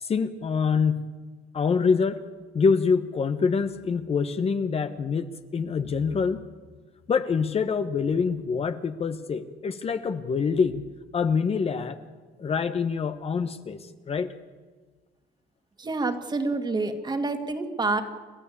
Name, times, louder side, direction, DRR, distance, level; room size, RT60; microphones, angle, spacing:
voice 1, 0.0-1.1 1.5-2.2 2.5-6.4 7.1-10.8 11.1-12.0 12.4-13.8 14.1-14.3, left 5 dB, 35° left, 9 dB, 1.1 m, -25 dB
voice 2, 15.8-18.0, right 3 dB, 25° right, 7 dB, 2.1 m, -27 dB
29.5 x 13.5 x 8.5 m, 1.5 s
cardioid pair, 110°, 17 cm